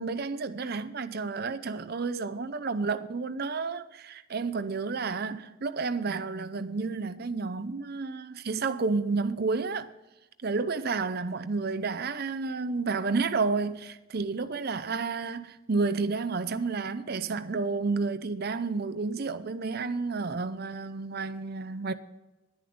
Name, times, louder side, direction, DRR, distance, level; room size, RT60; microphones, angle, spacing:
voice 1, 0.0-9.9 10.4-21.9, right 4 dB, 50° right, 0.6 m, -31 dB
10.5 x 10.5 x 5.1 m
head